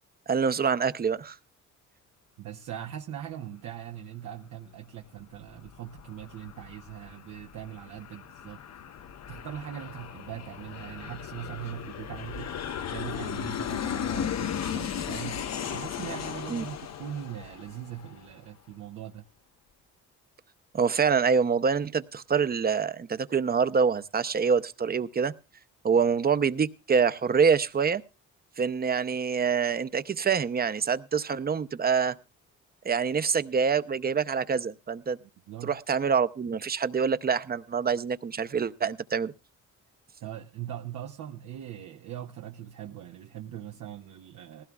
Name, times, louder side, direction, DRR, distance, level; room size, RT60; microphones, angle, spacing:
voice 1, 0.3-1.4 16.5-16.6 20.7-25.3 25.8-28.0 28.6-32.2 32.8-35.2 35.6-39.3, right 6 dB, 30° right, 14 dB, 0.7 m, -26 dB
voice 2, 2.4-8.6 8.9-9.0 9.3-19.2 35.2-35.7 40.2-44.6, right 10 dB, 80° right, 3 dB, 0.9 m, -41 dB
Aircraft, 5.2-18.4, left 8 dB, 60° left, 1.0 m, -36 dB
18.5 x 16.0 x 2.4 m, 0.30 s
cardioid pair, 90°, 30 cm